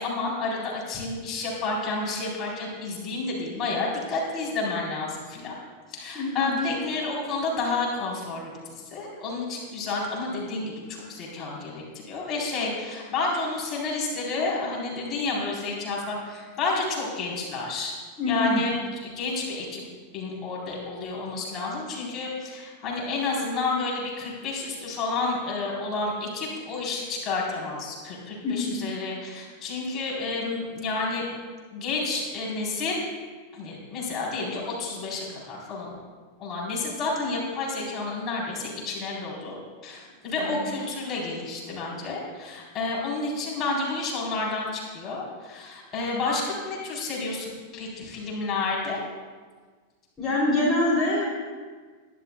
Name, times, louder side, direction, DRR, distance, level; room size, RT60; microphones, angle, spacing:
voice 1, 0.0-5.6 5.9-17.9 18.2-19.8 20.1-31.3 31.7-33.1 33.5-35.9 36.4-39.5 39.8-49.0, left 3 dB, 30° left, -3 dB, 4.1 m, -30 dB
voice 2, 6.1-6.7 18.2-18.7 28.4-28.8 40.4-40.6 50.2-51.3, left 2 dB, 15° left, -7 dB, 3.2 m, -25 dB
22.0 x 11.5 x 2.4 m, 1.5 s
figure-of-eight pair, 90°, 0 cm